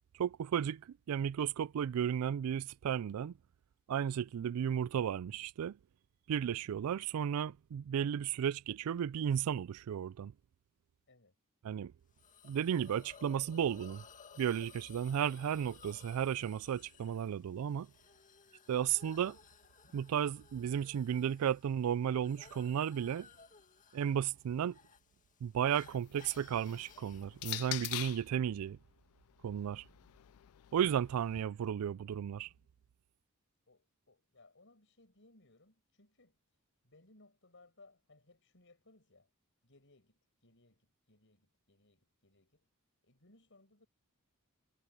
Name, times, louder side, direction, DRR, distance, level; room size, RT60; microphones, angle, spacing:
voice 1, 0.2-3.3 3.9-5.8 6.3-10.3 11.6-11.9 12.4-14.0 14.4-17.9 18.7-19.4 19.9-23.3 23.9-24.8 25.4-28.8 29.4-29.8 30.7-32.5, right 8 dB, 85° right, 0.3 m, -34 dB
Hiss, 12.2-27.6, left 6 dB, 35° left, 2.0 m, -58 dB
sound 1, 25.9-28.3 29.3-31.4, left 17 dB, 85° left, 0.4 m, -44 dB
voice 2, 32.2-32.8 33.7-36.4 36.8-39.3 39.6-42.7 43.0-43.9, left 2 dB, 60° left, 7.9 m, -65 dB
head